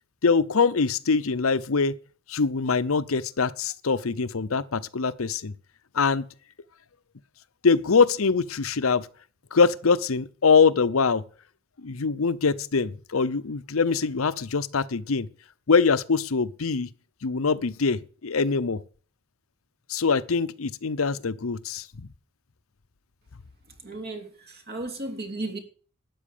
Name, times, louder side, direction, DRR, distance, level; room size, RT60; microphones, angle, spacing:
voice 1, 0.2-1.9 2.3-5.5 5.9-6.3 7.6-9.1 9.5-11.2 11.8-15.3 15.7-16.9 17.2-18.8 19.9-22.1, left 5 dB, 90° left, 0.7 m, -23 dB
voice 2, 23.8-25.6, right 2 dB, 50° right, 3.1 m, -35 dB
12.5 x 9.5 x 6.7 m
head